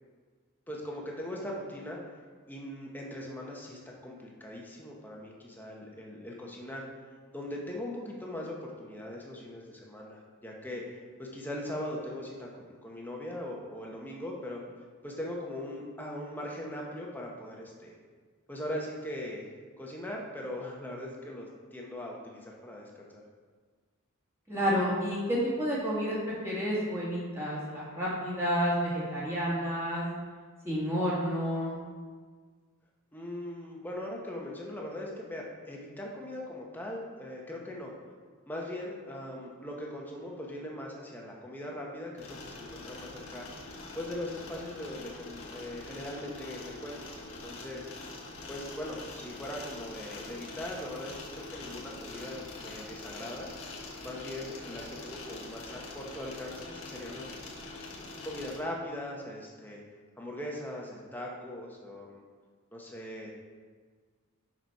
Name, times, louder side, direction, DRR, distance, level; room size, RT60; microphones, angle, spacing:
voice 1, 0.7-2.0 2.5-6.8 7.3-14.6 15.0-17.9 18.5-19.5 19.8-23.2 33.1-37.9 38.5-43.5 43.9-47.9 48.5-53.5 54.0-57.3 58.2-59.8 60.2-62.2 62.7-63.3, left 1 dB, 10° left, -2 dB, 1.0 m, -40 dB
voice 2, 24.5-30.0 30.6-31.8, equal, 10° right, -7 dB, 1.8 m, -30 dB
sound 1, 42.2-58.6, left 2 dB, 65° left, 1.4 m, -44 dB
6.6 x 6.0 x 4.7 m, 1.6 s
head